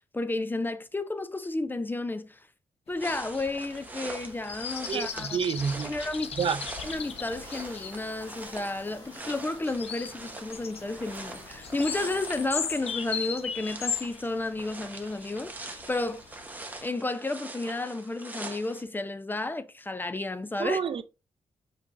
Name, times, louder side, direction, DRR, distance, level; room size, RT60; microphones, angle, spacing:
voice 1, 0.0-2.5 2.9-5.4 5.8-6.3 6.8-16.2 16.8-20.8, left 2 dB, 20° left, 0.4 m, -32 dB
sound 1, 2.9-16.9, left 7 dB, 70° left, 0.6 m, -39 dB
sound 2, 3.0-18.8, right 2 dB, 15° right, 0.9 m, -43 dB
sound 3, 3.4-12.5, left 1 dB, 40° left, 1.7 m, -51 dB
voice 2, 4.9-5.9 6.4-6.6 20.6-21.0, right 6 dB, 55° right, 0.4 m, -29 dB
5.0 x 4.1 x 2.5 m
cardioid pair, 85°, 11 cm